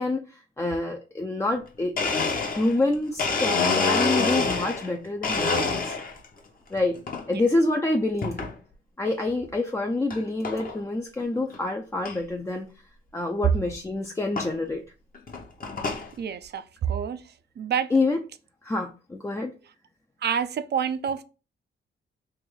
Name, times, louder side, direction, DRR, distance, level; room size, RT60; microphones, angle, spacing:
voice 1, 0.0-6.0 6.7-7.0 7.3-8.5 9.0-12.7 13.1-14.8 17.9-18.2 18.6-19.5, left 2 dB, 15° left, 0.4 m, -27 dB
Domestic sounds home sounds, 1.6-1.7 2.0-4.9 5.2-6.3 6.7-7.2 8.2-8.5 9.1-9.2 10.1-10.2 10.4-10.8 11.2-11.3 11.5-11.6 12.0-12.1 13.5-13.6 14.4-14.5 15.1-16.1, left 4 dB, 40° left, 0.9 m, -26 dB
voice 2, 16.2-17.2 17.6-17.9 20.2-21.2, right 8 dB, 55° right, 0.4 m, -28 dB
3.3 x 2.6 x 3.6 m
cardioid pair, 90°, 21 cm